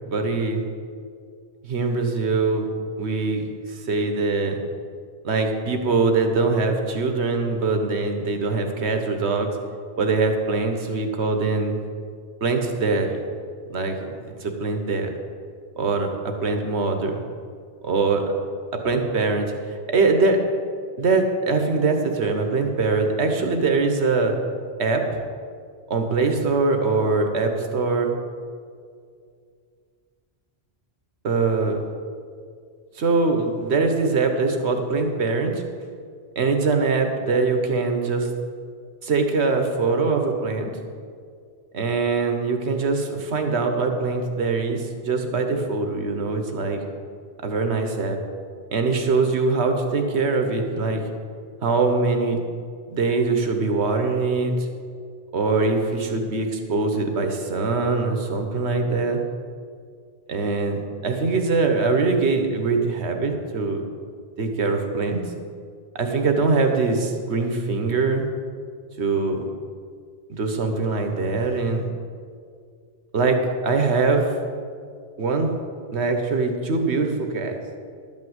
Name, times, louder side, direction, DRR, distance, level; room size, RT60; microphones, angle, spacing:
voice 1, 0.1-0.6 1.6-2.7 3.0-4.6 5.2-9.6 10.0-11.7 12.4-13.2 13.7-15.1 15.8-16.1 16.4-17.2 17.8-18.3 18.8-19.5 19.9-20.4 21.0-24.3 24.8-25.2 25.9-28.1 31.2-31.8 32.9-35.6 36.3-38.3 39.0-40.7 41.7-46.8 47.4-48.2 48.7-51.0 51.6-52.4 52.9-54.7 55.3-59.2 60.3-63.8 64.4-65.2 65.9-68.2 69.0-69.4 70.3-71.8 73.1-74.3 75.2-75.5 75.9-77.5, right 3 dB, 90° right, 5 dB, 1.4 m, -22 dB
11.5 x 5.5 x 7.9 m, 2.2 s
omnidirectional pair, 1.1 m